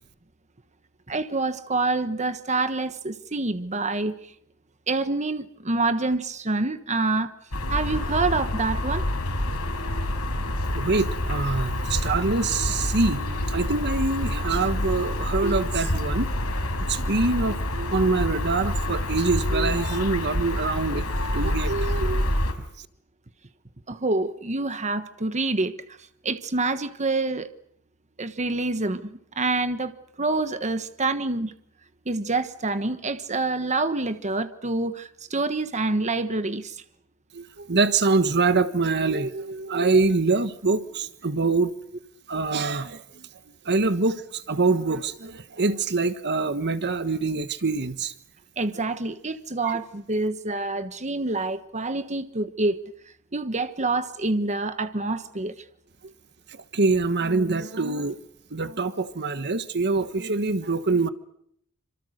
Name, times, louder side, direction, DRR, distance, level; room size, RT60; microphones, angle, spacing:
voice 1, 1.1-4.3 4.9-7.3 7.7-9.0 23.9-25.7 26.2-27.5 28.2-31.5 32.0-36.8 48.6-52.8 53.3-55.5, right 3 dB, 35° right, 1.3 m, -27 dB
sound 1, 7.5-22.5, left 1 dB, 90° left, 5.2 m, -27 dB
voice 2, 10.7-16.3 16.9-22.3 37.3-41.7 42.3-43.2 43.6-48.1 49.6-49.8 56.5-58.2 58.5-61.1, right 3 dB, 50° right, 1.4 m, -25 dB
28.0 x 26.5 x 6.6 m
head